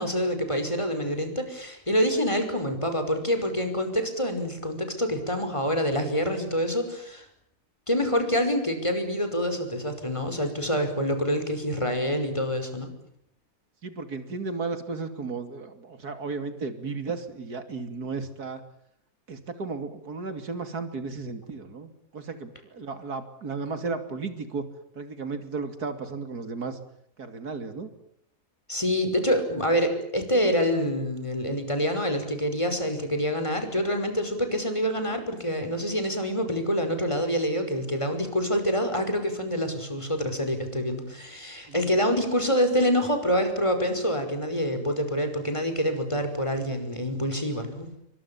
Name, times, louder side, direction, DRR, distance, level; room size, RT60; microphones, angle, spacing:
voice 1, 0.0-7.3 7.9-12.9 28.7-47.9, equal, 20° left, 7 dB, 5.6 m, -26 dB
voice 2, 13.8-18.6 19.3-24.7 24.9-26.8 27.2-27.9 41.7-41.9, right 4 dB, 90° right, 9 dB, 3.2 m, -34 dB
28.0 x 24.5 x 7.2 m, 0.73 s
omnidirectional pair, 1.6 m